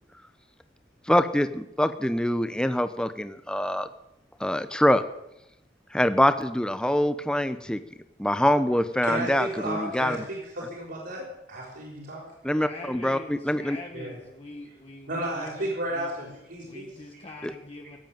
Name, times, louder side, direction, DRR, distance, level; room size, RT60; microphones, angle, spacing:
voice 1, 1.1-3.9 4.4-5.0 5.9-7.8 8.2-10.2 12.4-13.8 17.4-17.5, left 1 dB, 5° left, 10 dB, 0.8 m, -24 dB
voice 2, 9.0-12.2 13.9-14.1 15.1-17.2, right 1 dB, 65° right, -6 dB, 5.0 m, -33 dB
voice 3, 12.6-16.1 16.6-18.0, left 2 dB, 35° left, 1 dB, 1.4 m, -43 dB
17.5 x 8.3 x 9.1 m, 0.86 s
head